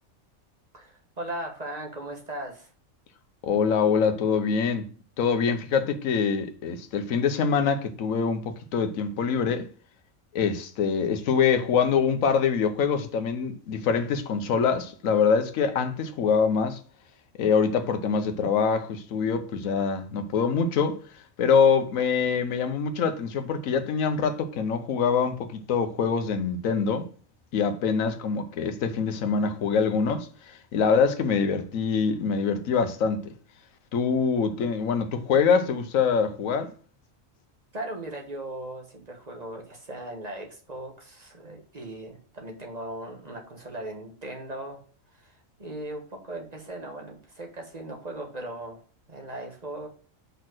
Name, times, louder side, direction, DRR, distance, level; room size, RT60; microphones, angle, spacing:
voice 1, 0.7-2.7 37.7-44.8 45.1-48.8 49.1-49.9, right 1 dB, 30° right, 1.4 m, -38 dB
voice 2, 3.4-4.9 5.2-9.7 10.3-16.8 17.4-21.0 21.4-27.1 27.5-33.2 33.9-36.7, left 6 dB, 75° left, 1.2 m, -24 dB
5.3 x 4.3 x 6.1 m
omnidirectional pair, 1.4 m